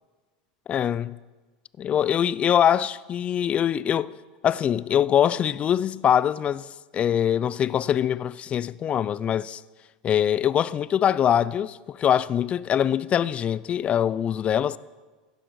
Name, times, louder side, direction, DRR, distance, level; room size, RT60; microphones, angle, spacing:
voice 1, 0.7-1.2 1.8-4.1 4.4-6.7 6.9-9.6 10.0-14.8, left 9 dB, 35° left, 0.5 m, -23 dB
16.0 x 12.0 x 4.8 m
hypercardioid pair, 105°, 4 cm